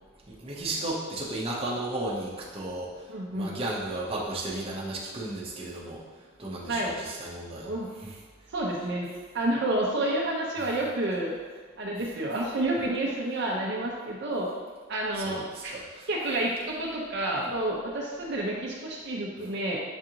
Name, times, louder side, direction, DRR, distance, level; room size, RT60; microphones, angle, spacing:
voice 1, 0.4-2.9 3.3-6.0 6.4-7.7 15.2-15.8, right 2 dB, 30° right, -5 dB, 0.8 m, -34 dB
voice 2, 3.1-3.6 6.7-7.0 7.6-7.9 8.5-11.3 11.8-14.5 14.9-15.8 16.1-19.8, right 1 dB, 60° right, -3 dB, 0.6 m, -29 dB
7.1 x 2.6 x 2.8 m, 1.4 s
head